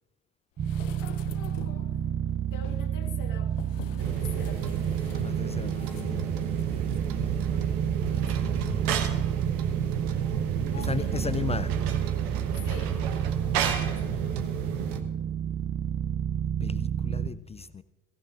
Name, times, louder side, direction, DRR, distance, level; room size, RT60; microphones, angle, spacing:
sound 1, 0.6-1.9 2.5-7.1 7.4-7.5, left 11 dB, 75° left, 0.7 m, -46 dB
sound 2, 0.6-17.3, right 9 dB, 35° right, 0.8 m, -30 dB
voice 1, 1.0-2.0 2.5-3.5 3.9-5.2 7.4-7.8 8.1-8.6 10.6-11.3 12.6-13.0 13.9-14.4, left 7 dB, 55° left, 1.9 m, -46 dB
sound 3, 4.0-15.0, right 7 dB, 65° right, 1.1 m, -32 dB
voice 2, 5.1-6.4 7.1-7.3 8.0-9.3 10.8-11.7 16.6-17.8, left 6 dB, 15° left, 0.4 m, -36 dB
22.5 x 15.5 x 2.5 m
figure-of-eight pair, 55°, 37 cm